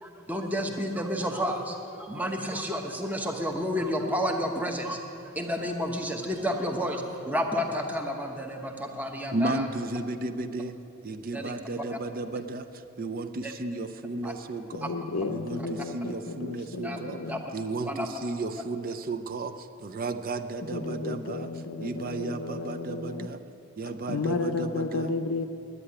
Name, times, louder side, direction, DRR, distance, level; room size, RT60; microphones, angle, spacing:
voice 1, 0.0-5.0 5.2-9.7 11.3-11.6 11.9-12.0 13.4-13.5 14.2-14.3 14.8-14.9 16.8-17.0 17.3-17.4 17.8-18.1, equal, 10° right, 2 dB, 0.9 m, -31 dB
voice 2, 9.3-10.7 11.0-12.7 13.0-14.9 15.3-17.2 17.5-21.5 21.8-23.4 23.8-25.1, right 2 dB, 40° right, 9 dB, 0.5 m, -33 dB
voice 3, 14.7-17.4 20.7-23.3 24.1-25.5, left 3 dB, 75° left, 6 dB, 0.6 m, -32 dB
9.9 x 9.5 x 10.0 m, 2.8 s
head